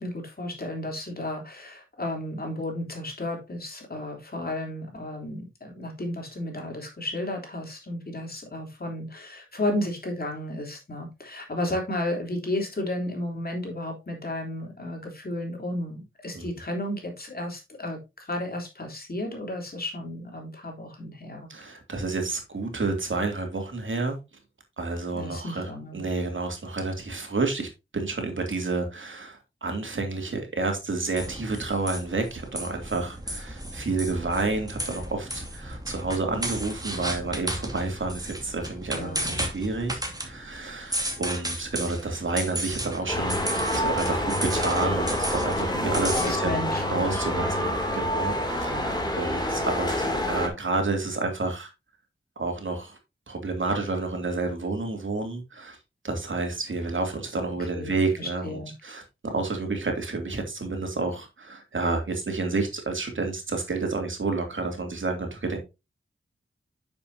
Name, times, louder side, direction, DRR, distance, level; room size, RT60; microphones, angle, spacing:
voice 1, 0.0-21.5 25.1-26.1 38.9-39.3 45.5-47.4 57.7-58.7, left 1 dB, 45° left, 3.5 m, -33 dB
voice 2, 21.5-24.2 24.8-25.7 25.9-43.4 43.7-51.7 52.4-53.0 53.3-55.8 56.0-65.6, right 3 dB, 65° right, 2.7 m, -30 dB
sound 1, 31.2-46.3, right 1 dB, 15° right, 2.5 m, -34 dB
sound 2, 43.1-50.5, left 1 dB, 20° left, 2.7 m, -27 dB
9.5 x 7.0 x 2.8 m
wide cardioid pair, 75°, 21 cm